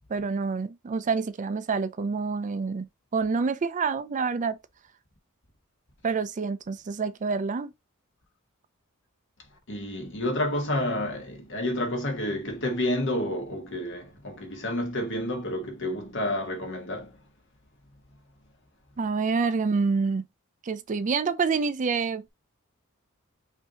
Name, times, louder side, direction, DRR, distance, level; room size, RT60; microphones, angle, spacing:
voice 1, 0.1-4.6 6.0-7.7 19.0-20.3 20.6-22.3, right 4 dB, 35° right, 0.4 m, -27 dB
voice 2, 9.7-17.1, left 1 dB, 60° left, 1.4 m, -30 dB
5.5 x 2.7 x 2.9 m
head